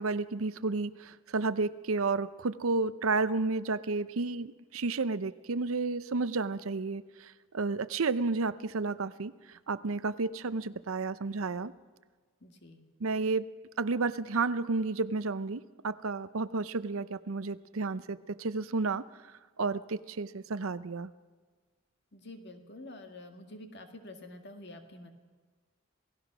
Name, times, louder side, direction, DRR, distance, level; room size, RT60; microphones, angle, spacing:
voice 1, 0.0-9.3 9.7-11.7 13.0-19.0 19.6-21.1, right 3 dB, 80° right, 15 dB, 0.7 m, -31 dB
voice 2, 12.4-12.9 22.1-25.1, left 1 dB, 50° left, 5 dB, 2.0 m, -48 dB
27.5 x 17.5 x 6.1 m, 1.5 s
head